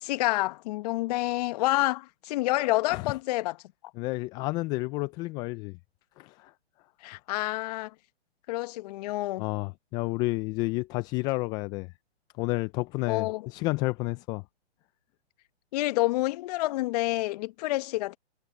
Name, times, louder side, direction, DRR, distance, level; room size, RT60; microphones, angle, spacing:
voice 1, 0.0-3.6 7.0-7.9 8.5-9.4 13.1-13.5 15.7-18.2, left 19 dB, 35° left, 1.1 m, -28 dB
voice 2, 4.0-5.8 6.2-6.5 9.4-11.9 12.4-14.4, left 22 dB, 15° left, 0.4 m, -30 dB
hypercardioid pair, 130°, 33 cm